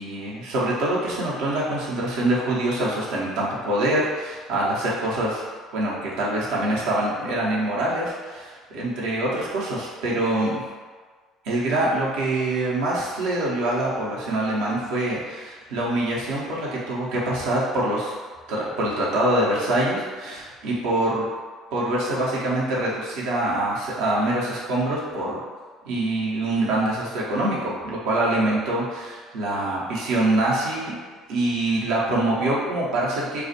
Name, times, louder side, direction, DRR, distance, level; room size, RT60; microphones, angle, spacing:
voice 1, 0.0-5.4 5.7-10.6 11.4-18.1 18.5-21.3 21.7-25.4 25.9-31.0 31.3-33.4, right 1 dB, 70° right, -5 dB, 0.6 m, -25 dB
2.3 x 2.1 x 2.7 m, 1.5 s
hypercardioid pair, 60°, 0 cm